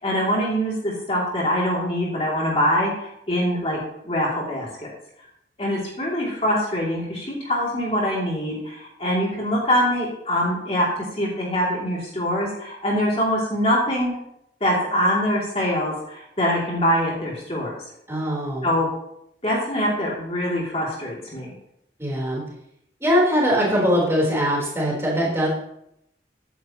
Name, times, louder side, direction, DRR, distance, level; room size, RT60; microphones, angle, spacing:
voice 1, 0.0-3.8 4.0-4.9 5.6-10.9 11.2-14.2 14.6-17.7 18.6-18.9 19.4-21.5, equal, 35° left, -4 dB, 2.6 m, -24 dB
voice 2, 18.1-18.7 22.0-22.4 23.0-25.5, equal, 15° right, -4 dB, 3.7 m, -21 dB
15.0 x 9.3 x 3.0 m, 0.76 s
head